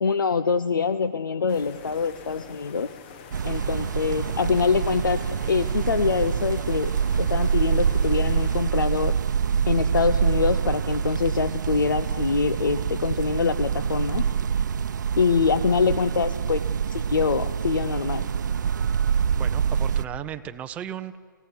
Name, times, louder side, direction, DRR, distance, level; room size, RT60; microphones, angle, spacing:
voice 1, 0.0-2.9 3.4-6.9 7.2-9.1 9.7-14.2 15.2-18.3, left 5 dB, 75° left, 13 dB, 0.9 m, -24 dB
sound 1, 1.5-8.6, left 6 dB, 30° left, 1.2 m, -45 dB
sound 2, 3.3-20.0, right 7 dB, 60° right, 0.8 m, -25 dB
voice 2, 19.4-21.2, right 10 dB, 10° right, 10 dB, 0.6 m, -35 dB
28.5 x 15.5 x 9.6 m, 2.1 s
hypercardioid pair, 150°, 11 cm